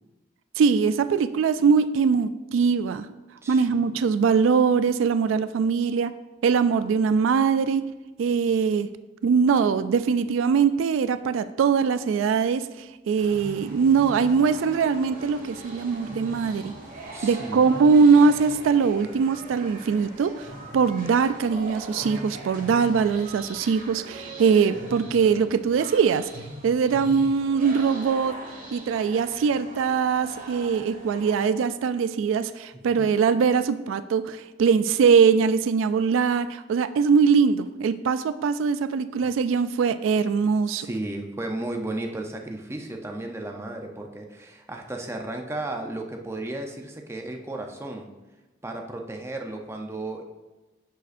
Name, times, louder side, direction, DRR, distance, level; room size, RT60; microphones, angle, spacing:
voice 1, 0.6-3.1 3.5-6.1 6.4-7.8 8.2-8.9 9.2-16.7 17.2-20.5 20.7-26.3 26.6-28.4 28.7-40.9, right 5 dB, 85° right, 12 dB, 0.3 m, -22 dB
voice 2, 3.4-3.8 17.1-17.8 33.0-33.1 40.7-48.1 48.6-50.2, right 2 dB, 15° right, 3 dB, 0.6 m, -34 dB
sound 1, 13.2-31.4, right 1 dB, 45° right, 1.6 m, -41 dB
10.0 x 6.7 x 2.6 m, 1.1 s
head